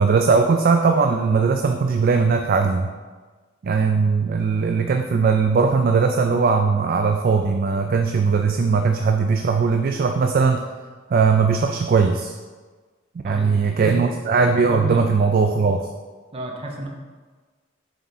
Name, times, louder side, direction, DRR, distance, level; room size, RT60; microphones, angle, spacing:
voice 1, 0.0-2.9 3.6-10.6 11.1-12.3 13.2-15.9, right 5 dB, 50° right, 5 dB, 0.3 m, -19 dB
voice 2, 13.2-15.0 16.3-16.9, right 1 dB, 30° right, 0 dB, 0.9 m, -32 dB
7.8 x 3.6 x 4.0 m, 1.4 s
head